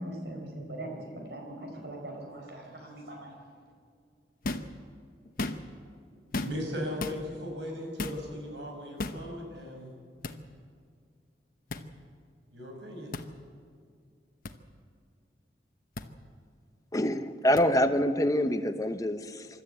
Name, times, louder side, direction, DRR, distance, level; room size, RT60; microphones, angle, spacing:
voice 1, 0.0-3.3, right 1 dB, 70° right, 1 dB, 5.0 m, -41 dB
sound 1, 4.4-4.7 5.3-5.8 6.3-6.7 7.0-7.2 8.0-8.2 9.0-9.2 10.2-10.4 11.7-11.9 13.1-13.3 14.4-14.5 16.0-16.1 17.6-17.7, left 2 dB, 50° left, 1.0 m, -34 dB
voice 2, 6.4-9.9 12.5-13.2, left 1 dB, 85° right, 2 dB, 5.4 m, -37 dB
voice 3, 16.9-19.5, equal, 20° left, 9 dB, 0.9 m, -26 dB
25.0 x 13.0 x 8.2 m, 2.2 s
head